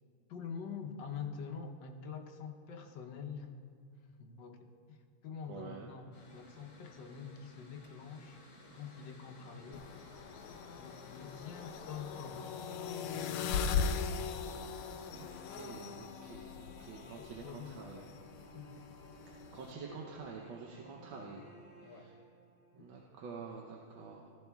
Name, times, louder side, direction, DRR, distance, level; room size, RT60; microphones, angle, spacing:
voice 1, 0.3-3.5 4.2-8.4 8.7-9.9 10.7-14.5 16.9-18.2 18.5-18.8 21.1-21.3 21.8-22.2 22.8-22.9, left 6 dB, 65° left, 3 dB, 1.4 m, -46 dB
voice 2, 5.5-5.9 15.1-18.0 19.3-21.4 21.8-21.9 22.7-24.3, right 5 dB, 70° right, 0 dB, 1.5 m, -48 dB
Mechanical fan, 6.1-15.4, left 1 dB, 45° left, 3.6 m, -58 dB
sound 1, 9.7-19.7, left 6 dB, 85° left, 1.5 m, -40 dB
sound 2, 15.1-22.8, left 2 dB, 10° right, 1.4 m, -57 dB
15.0 x 14.0 x 2.3 m, 2.1 s
omnidirectional pair, 2.3 m